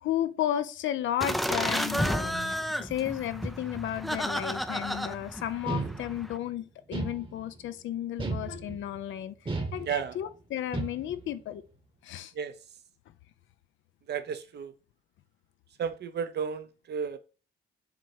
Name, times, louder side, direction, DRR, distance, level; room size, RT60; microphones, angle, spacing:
voice 1, 0.0-11.6 12.0-12.3, left 11 dB, 75° left, 0.7 m, -33 dB
sound 1, 1.2-6.4, equal, ahead, 0.5 m, -32 dB
sound 2, 5.7-6.4 6.9-7.7 8.2-9.0 9.4-10.3 10.7-11.3, right 3 dB, 25° right, 1.2 m, -34 dB
voice 2, 9.8-10.1 12.3-12.5 14.1-14.7 15.8-17.2, right 7 dB, 55° right, 0.9 m, -33 dB
7.5 x 3.0 x 4.7 m
cardioid pair, 90°, 20 cm